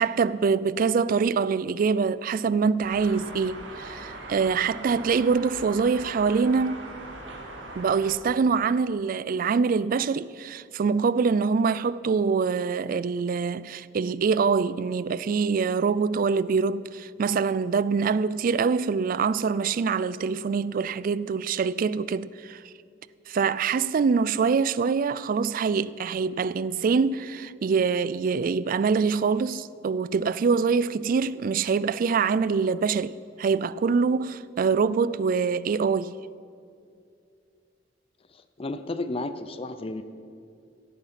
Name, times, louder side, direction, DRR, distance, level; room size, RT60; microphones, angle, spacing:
voice 1, 0.0-6.8 7.8-22.6 23.3-36.2, right 5 dB, 50° right, 0.3 m, -24 dB
sound 1, 2.8-8.1, right 2 dB, 80° right, 1.9 m, -40 dB
voice 2, 38.3-40.0, left 2 dB, 30° left, 0.5 m, -33 dB
16.5 x 9.1 x 5.8 m
head